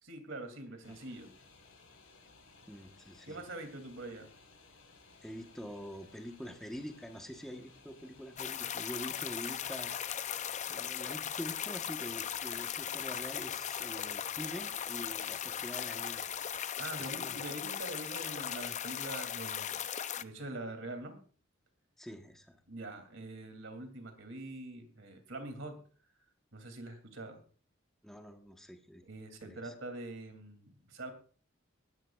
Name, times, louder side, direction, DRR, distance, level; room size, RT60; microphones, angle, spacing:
voice 1, 0.0-1.3 3.2-4.3 16.8-19.8 20.2-21.2 22.7-25.8 26.5-27.4 29.0-31.1, right 2 dB, 70° right, 6 dB, 2.8 m, -44 dB
sound 1, 0.8-16.6, left 3 dB, 80° left, 4.7 m, -60 dB
voice 2, 2.7-3.4 5.2-9.9 10.7-16.2 17.0-17.4 22.0-22.6 28.0-29.0 29.4-29.7, equal, ahead, 4 dB, 1.2 m, -45 dB
sound 2, 8.4-20.2, left 9 dB, 35° left, 0.5 m, -38 dB
19.0 x 13.0 x 2.4 m, 0.41 s
head